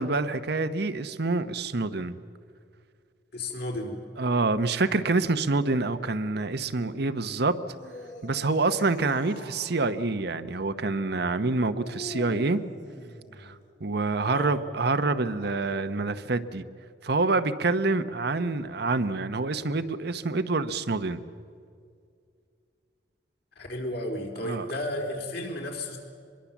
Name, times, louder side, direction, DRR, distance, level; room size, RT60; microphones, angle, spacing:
voice 1, 0.0-2.2 4.2-7.6 8.2-12.6 13.4-13.5 13.8-16.6 17.0-21.2 24.4-24.6, right 3 dB, 65° right, 11 dB, 1.0 m, -27 dB
voice 2, 3.3-4.0 14.3-14.6 23.6-26.0, left 1 dB, 65° left, 1 dB, 4.2 m, -33 dB
sound 1, 7.7-9.9 11.8-13.6 15.2-15.7, left 1 dB, 45° left, 2.8 m, -44 dB
25.0 x 22.0 x 7.3 m, 2.3 s
head